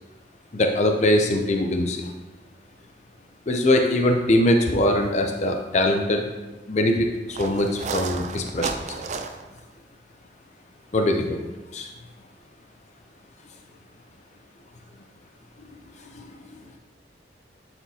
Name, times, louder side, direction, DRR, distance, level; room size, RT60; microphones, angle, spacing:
voice 1, 0.5-2.0 3.5-6.2 6.7-8.7 10.9-11.4 11.7-11.9, left 1 dB, 40° left, 3 dB, 0.5 m, -22 dB
sound 1, 5.0-5.2 5.6-5.7 7.3-9.6, right 4 dB, 40° right, 0.4 m, -32 dB
voice 2, 15.6-16.8, left 2 dB, 80° left, -3 dB, 1.8 m, -50 dB
11.0 x 4.3 x 2.8 m, 1.1 s
head